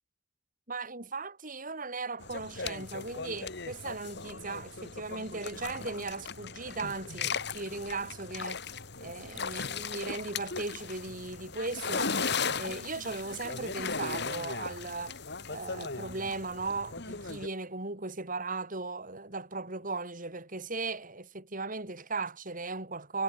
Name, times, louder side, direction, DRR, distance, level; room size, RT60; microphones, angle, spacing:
voice 1, 0.7-8.6 9.0-12.1 12.5-15.2 15.5-23.2, right 3 dB, 45° right, 6.1 m, -37 dB
sound 1, 2.2-17.5, left 5 dB, 60° left, 4.2 m, -37 dB
head